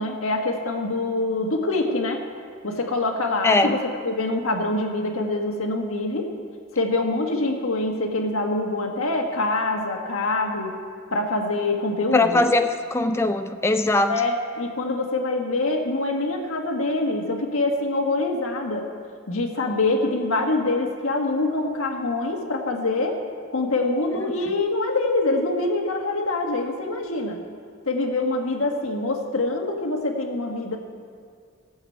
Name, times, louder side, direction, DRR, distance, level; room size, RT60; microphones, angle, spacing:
voice 1, 0.0-2.2 2.6-3.8 4.0-6.3 6.7-10.7 11.1-12.4 14.1-18.9 19.3-23.2 23.5-27.4 27.9-30.8, left 2 dB, 75° left, 2 dB, 1.6 m, -25 dB
voice 2, 3.4-3.8 12.1-14.2, left 2 dB, 10° left, 7 dB, 0.4 m, -21 dB
15.0 x 7.2 x 8.5 m, 2.2 s
head